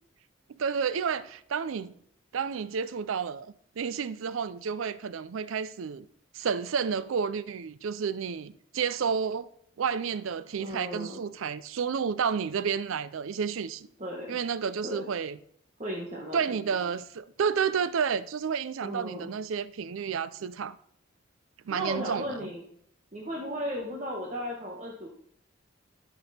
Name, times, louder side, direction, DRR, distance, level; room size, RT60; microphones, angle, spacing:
voice 1, 0.6-1.9 2.3-6.1 6.3-9.5 9.8-13.9 14.3-15.4 16.3-20.8 21.7-22.5, right 6 dB, 80° right, 0.4 m, -31 dB
voice 2, 10.6-11.2 14.0-14.4 14.8-15.1 15.8-16.6 18.8-19.3 21.7-22.6 23.1-25.1, equal, 35° right, 1.3 m, -35 dB
12.5 x 6.1 x 4.2 m
head